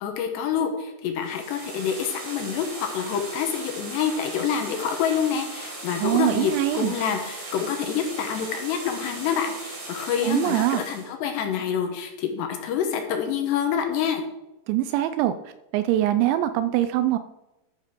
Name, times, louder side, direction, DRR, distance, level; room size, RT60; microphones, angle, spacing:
voice 1, 0.0-14.2, left 7 dB, 75° left, 4 dB, 2.9 m, -27 dB
sound 1, 1.2-11.1, right 2 dB, 50° right, 5.4 m, -38 dB
voice 2, 6.0-6.9 10.2-10.8 14.7-15.3 15.7-17.2, right 13 dB, 85° right, 12 dB, 2.7 m, -23 dB
12.0 x 9.0 x 3.7 m, 0.97 s
omnidirectional pair, 5.6 m